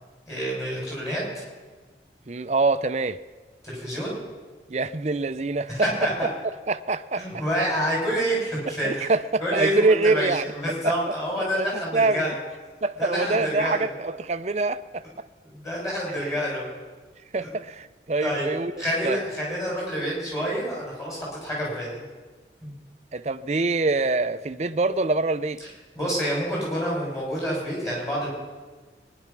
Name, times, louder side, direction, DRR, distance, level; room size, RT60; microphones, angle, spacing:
voice 1, 0.3-1.4 3.6-4.1 5.7-6.3 7.2-9.1 9.4-12.3 13.0-13.9 15.5-16.7 17.4-17.5 18.2-18.5 18.8-22.0 22.6-22.7 26.0-28.3, equal, 20° left, 7.1 m, -28 dB
voice 2, 2.3-3.2 4.7-5.9 6.7-7.4 8.8-10.4 10.8-10.9 11.4-11.7 11.9-12.3 12.8-15.0 16.2-16.3 17.3-18.7 19.0-19.2 23.1-25.6, right 3 dB, 40° right, 0.5 m, -25 dB
22.5 x 11.0 x 6.0 m
head